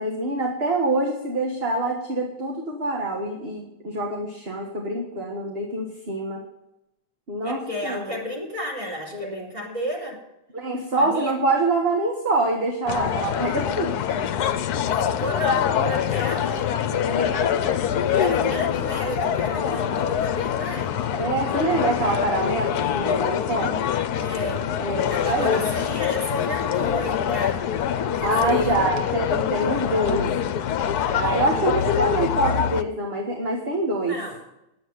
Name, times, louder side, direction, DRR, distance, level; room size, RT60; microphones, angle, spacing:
voice 1, 0.0-6.4 7.3-8.2 9.1-9.5 10.5-14.0 14.8-14.9 16.9-17.5 21.2-23.9 24.8-25.6 28.2-30.3 31.1-34.2, right 2 dB, 40° right, 0 dB, 1.7 m, -25 dB
voice 2, 7.4-10.2 11.0-11.3 14.8-16.7 18.0-20.9 24.2-24.7 25.1-27.7 28.1-28.8 34.0-34.4, left 1 dB, 20° right, -3 dB, 3.7 m, -31 dB
sound 1, 12.9-32.8, left 9 dB, 75° left, 1.2 m, -25 dB
10.5 x 8.1 x 8.7 m, 0.88 s
omnidirectional pair, 1.7 m